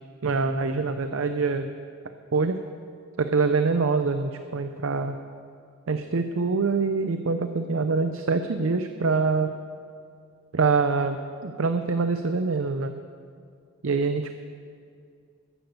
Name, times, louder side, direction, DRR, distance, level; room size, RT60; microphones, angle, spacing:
voice 1, 0.2-1.7 2.3-2.6 3.2-5.2 5.9-9.5 10.5-11.2 11.4-12.9 13.8-14.3, right 4 dB, 60° right, 8 dB, 0.6 m, -24 dB
13.5 x 10.0 x 6.9 m, 2.3 s
head